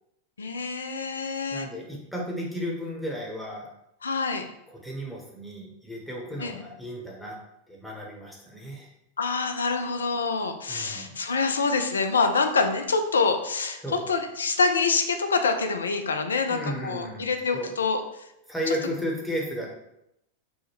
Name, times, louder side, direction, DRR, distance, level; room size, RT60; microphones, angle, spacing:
voice 1, 0.4-1.7 4.0-4.4 6.4-6.6 9.2-18.0 18.7-18.8, left 4 dB, 70° left, 6 dB, 0.3 m, -26 dB
voice 2, 1.5-3.7 4.7-7.4 7.7-8.9 10.7-11.2 13.8-14.1 16.5-17.7 18.5-19.7, equal, ahead, -3 dB, 0.8 m, -34 dB
3.4 x 2.1 x 2.9 m, 0.81 s
figure-of-eight pair, 90°, 0 cm